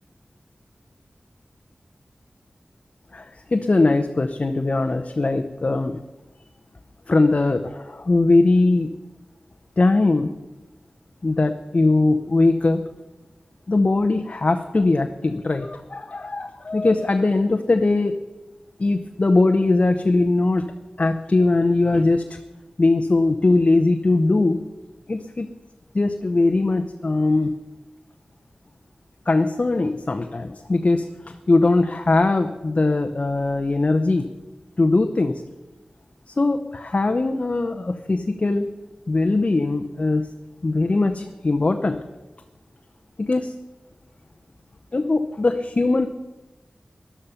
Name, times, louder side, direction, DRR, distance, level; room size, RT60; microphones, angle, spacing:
voice 1, 3.1-6.0 7.1-8.9 9.8-10.3 11.2-12.8 13.7-18.1 18.8-20.7 21.0-22.4 22.8-24.7 25.1-25.5 25.9-27.5 29.3-34.3 34.8-35.3 36.4-38.7 39.1-40.2 40.6-42.0 43.2-43.5 44.9-46.1, left 2 dB, 45° left, 6 dB, 0.7 m, -20 dB
13.5 x 11.5 x 5.7 m, 1.1 s
wide cardioid pair, 70°, 3 cm